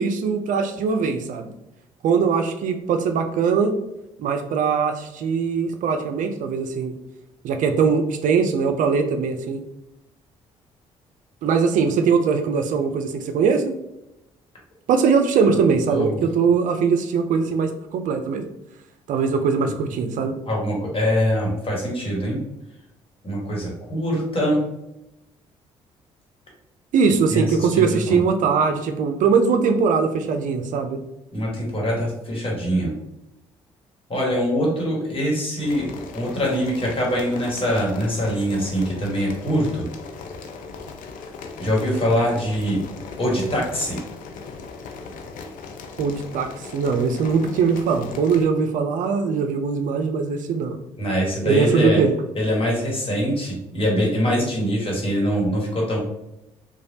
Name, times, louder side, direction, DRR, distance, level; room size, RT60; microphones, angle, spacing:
voice 1, 0.0-1.5 2.0-3.7 4.2-6.9 7.4-9.6 11.4-13.7 14.9-18.4 19.1-20.3 26.9-31.0 46.0-50.8 51.4-52.1, right 5 dB, 60° right, 6 dB, 0.4 m, -21 dB
voice 2, 20.5-22.4 23.2-24.6 27.3-28.2 31.3-32.9 34.1-35.9 36.1-39.9 41.6-42.8 43.2-44.0 51.0-52.0 52.3-56.0, equal, 35° left, -2 dB, 1.3 m, -23 dB
sound 1, 35.6-48.5, left 4 dB, 65° left, 0.5 m, -38 dB
3.1 x 2.2 x 2.7 m, 0.88 s
hypercardioid pair, 50°, 15 cm